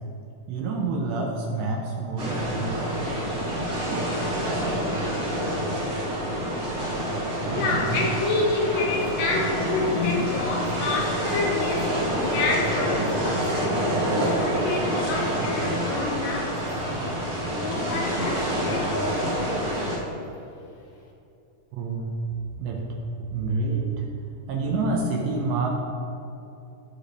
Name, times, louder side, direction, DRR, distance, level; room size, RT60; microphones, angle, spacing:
voice 1, 0.5-3.0 7.4-8.1 21.7-22.1 22.6-22.9 23.3-24.0 24.5-25.7, right 3 dB, 75° right, 0 dB, 2.9 m, -28 dB
sound 1, 2.2-20.0, equal, 45° right, 1.9 m, -27 dB
voice 2, 7.5-17.3 17.6-19.8, left 3 dB, 75° left, 0 dB, 2.7 m, -29 dB
19.0 x 6.6 x 3.3 m, 2.7 s
omnidirectional pair, 5.7 m